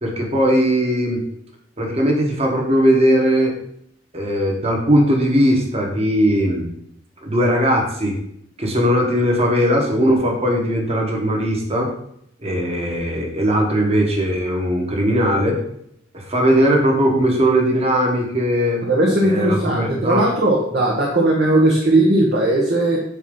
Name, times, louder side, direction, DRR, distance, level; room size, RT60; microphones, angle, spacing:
voice 1, 0.0-1.2 1.8-3.5 4.1-6.7 7.2-8.1 8.6-11.9 12.4-15.6 16.1-18.8 19.2-20.2, equal, 35° right, 0 dB, 1.4 m, -19 dB
voice 2, 18.8-23.0, right 1 dB, 55° right, -2 dB, 1.1 m, -17 dB
8.2 x 2.9 x 5.4 m, 0.72 s
head